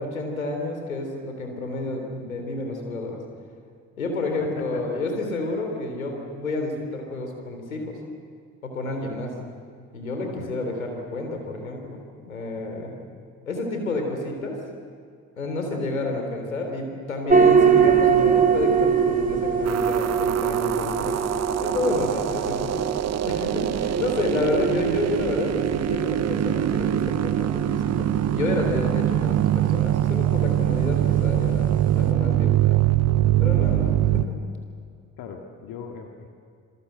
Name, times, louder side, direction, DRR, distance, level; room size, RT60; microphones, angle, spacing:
voice 1, 0.0-3.2 4.0-8.0 8.6-9.3 9.9-12.9 13.5-14.6 15.4-21.2 21.6-22.8 23.2-31.7 32.0-32.8 33.4-34.4, left 2 dB, 85° left, 3 dB, 3.6 m, -30 dB
voice 2, 4.4-5.0 10.3-10.5 21.8-22.1 24.3-24.8 32.5-32.7 35.2-36.3, left 7 dB, 55° left, 2 dB, 2.4 m, -37 dB
sound 1, 17.3-32.1, right 6 dB, 20° right, 2.8 m, -24 dB
sound 2, 19.7-34.2, right 12 dB, 40° right, 0.9 m, -23 dB
28.0 x 21.5 x 8.0 m, 2.3 s
figure-of-eight pair, 50°, 40 cm